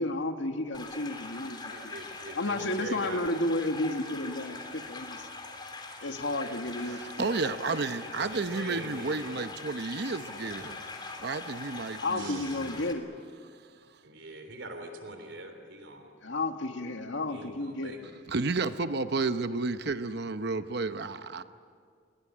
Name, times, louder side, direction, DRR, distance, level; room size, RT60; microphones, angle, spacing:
voice 1, 0.0-1.9 2.4-5.3 6.0-7.3 12.0-13.1 16.2-17.9, left 2 dB, 85° left, 6 dB, 1.8 m, -32 dB
sound 1, 0.7-12.9, left 3 dB, 25° left, 3.5 m, -42 dB
voice 2, 1.7-3.2 6.2-6.6 8.0-9.4 12.2-12.6 14.0-16.1 17.3-18.0, right 1 dB, 80° right, 6 dB, 3.4 m, -43 dB
voice 3, 6.9-10.8 11.2-12.7 18.3-21.4, right 3 dB, 60° right, 10 dB, 0.9 m, -32 dB
29.5 x 22.0 x 8.7 m, 2.1 s
head